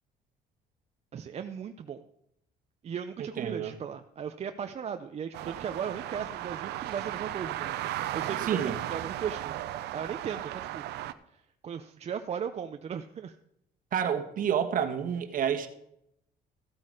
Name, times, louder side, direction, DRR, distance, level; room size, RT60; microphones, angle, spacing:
voice 1, 1.1-2.0 2.8-7.8 8.1-9.5 9.9-10.9 11.3-13.4, right 7 dB, 40° right, 0.6 m, -37 dB
voice 2, 3.4-3.7 8.4-8.8 13.9-15.7, right 8 dB, 55° right, 1.5 m, -29 dB
sound 1, 5.3-11.1, right 14 dB, 80° right, 0.7 m, -35 dB
14.0 x 8.6 x 4.9 m
cardioid pair, 110°, 17 cm